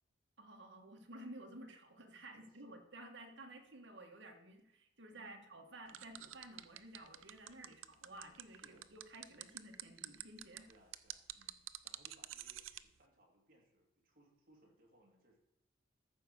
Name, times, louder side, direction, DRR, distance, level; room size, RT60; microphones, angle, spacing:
voice 1, 0.4-10.7, right 1 dB, 65° right, 3 dB, 1.5 m, -54 dB
voice 2, 2.3-2.8 5.1-5.5 8.6-8.9 10.7-15.4, right 1 dB, 45° right, 0 dB, 2.5 m, -68 dB
sound 1, 5.9-12.8, right 14 dB, 90° right, 0.5 m, -48 dB
13.5 x 4.8 x 6.7 m, 0.83 s
head